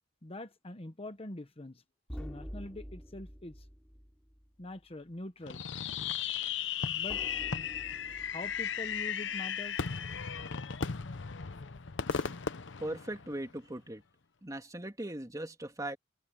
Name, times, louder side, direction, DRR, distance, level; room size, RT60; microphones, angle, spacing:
voice 1, 0.2-1.8 2.2-3.6 4.6-5.7 7.0-7.2 8.3-9.9, left 1 dB, 30° left, 1.2 m, -44 dB
sound 1, 2.1-4.9 7.1-9.8 12.1-12.7, equal, 5° left, 7.0 m, -48 dB
Fireworks, 5.5-13.6, left 7 dB, 80° left, 0.8 m, -36 dB
voice 2, 12.8-14.0 14.4-16.0, right 1 dB, 20° right, 2.4 m, -39 dB
head